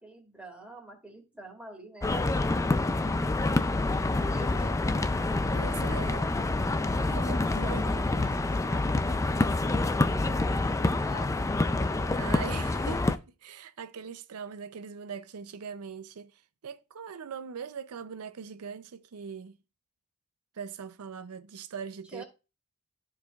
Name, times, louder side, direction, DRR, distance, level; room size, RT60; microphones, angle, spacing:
voice 1, 0.0-3.1 4.0-5.0 7.4-7.8 8.1-11.4 22.1-22.2, right 1 dB, 5° right, 2.0 m, -46 dB
sound 1, 2.0-13.2, left 2 dB, 15° left, 0.3 m, -27 dB
voice 2, 5.5-6.3 7.0-8.2 12.1-19.6 20.5-22.2, right 6 dB, 85° right, 0.5 m, -41 dB
13.0 x 4.8 x 2.3 m
head